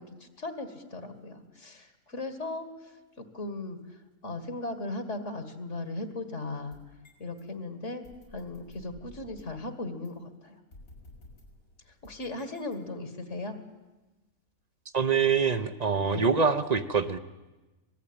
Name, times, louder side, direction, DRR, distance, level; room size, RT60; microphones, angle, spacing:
voice 1, 0.0-3.8 4.2-6.8 7.2-8.0 8.3-10.6 12.0-13.6 16.0-16.3, left 2 dB, 60° left, 9 dB, 2.3 m, -37 dB
sound 1, 6.7-7.4 8.0-9.6 10.0-10.1 10.7-13.2, left 1 dB, 85° left, 6.4 m, -53 dB
voice 2, 14.9-17.2, right 5 dB, 35° right, 11 dB, 0.9 m, -25 dB
25.5 x 18.5 x 8.9 m, 1.1 s
omnidirectional pair, 1.4 m